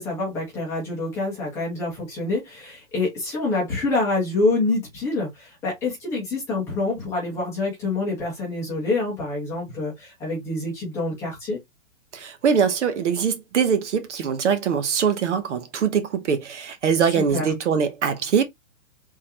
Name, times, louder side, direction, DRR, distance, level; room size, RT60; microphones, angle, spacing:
voice 1, 0.0-11.6 17.1-17.5, left 2 dB, 5° left, 1.0 m, -26 dB
voice 2, 12.1-18.4, right 7 dB, 55° right, 0.8 m, -22 dB
3.7 x 3.0 x 2.8 m
hypercardioid pair, 175°, 42 cm